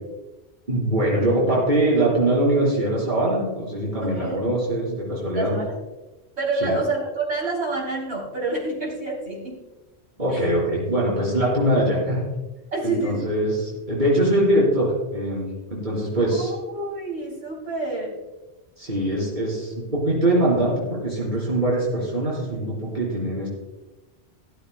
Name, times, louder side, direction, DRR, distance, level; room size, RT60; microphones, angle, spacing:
voice 1, 0.7-5.6 6.6-6.8 10.2-12.2 12.8-16.5 18.8-23.5, right 1 dB, 45° right, -6 dB, 4.3 m, -22 dB
voice 2, 4.0-4.4 5.3-5.8 6.4-9.6 10.3-10.6 12.7-13.2 16.2-18.2, right 2 dB, 80° right, -4 dB, 4.0 m, -28 dB
15.0 x 13.5 x 2.2 m, 1.1 s
omnidirectional pair, 1.1 m